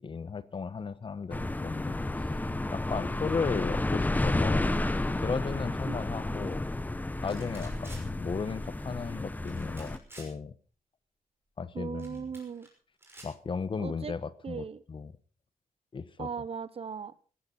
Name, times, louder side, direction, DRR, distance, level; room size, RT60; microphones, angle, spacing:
voice 1, 0.0-2.4 2.7-4.8 5.2-6.7 7.2-10.5 11.6-12.3 13.2-15.1 15.9-16.3, left 5 dB, 35° left, 16 dB, 0.9 m, -35 dB
sound 1, 1.3-10.0, left 2 dB, 10° left, 0.9 m, -31 dB
sound 2, 7.3-8.0 9.5-10.3 12.0-12.7 13.0-13.3, right 1 dB, 15° right, 5.9 m, -50 dB
voice 2, 11.7-12.7 13.8-14.1 14.4-14.8 16.2-17.1, right 6 dB, 40° right, 17 dB, 0.8 m, -38 dB
17.5 x 14.5 x 4.2 m, 0.39 s
wide cardioid pair, 150°, 15 cm